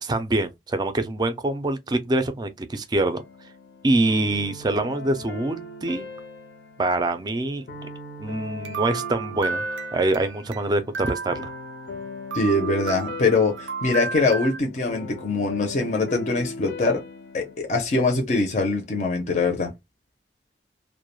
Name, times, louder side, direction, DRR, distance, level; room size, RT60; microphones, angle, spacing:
voice 1, 0.0-3.2 3.8-6.1 6.8-7.7 8.2-9.6 9.9-11.5, right 2 dB, 25° right, 0.4 m, -25 dB
sound 1, 3.2-17.6, left 2 dB, 85° left, 0.6 m, -39 dB
sound 2, 8.6-10.6 10.9-12.0 12.3-14.6, right 5 dB, 85° right, 0.4 m, -33 dB
voice 2, 12.3-17.0 17.3-19.7, left 3 dB, 40° left, 0.5 m, -23 dB
2.2 x 2.1 x 3.0 m
head